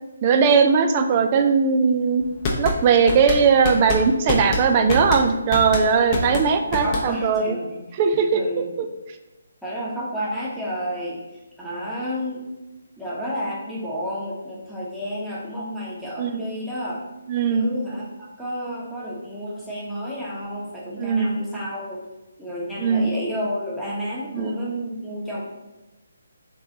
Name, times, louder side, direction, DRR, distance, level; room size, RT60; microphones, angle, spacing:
voice 1, 0.2-2.2 2.6-7.6 8.0-8.9 16.2-16.4 17.3-17.7 21.0-21.3 22.8-23.1 24.3-24.5, right 5 dB, 30° right, 7 dB, 0.4 m, -19 dB
sound 1, 2.2-7.4, left 2 dB, 25° left, 0.7 m, -26 dB
voice 2, 6.8-8.0 8.3-8.7 9.6-11.2 11.6-12.4 13.0-17.0 17.5-22.0 22.4-25.4, equal, ahead, -9 dB, 1.0 m, -31 dB
3.7 x 3.2 x 3.9 m, 1.0 s
figure-of-eight pair, 140°, 0 cm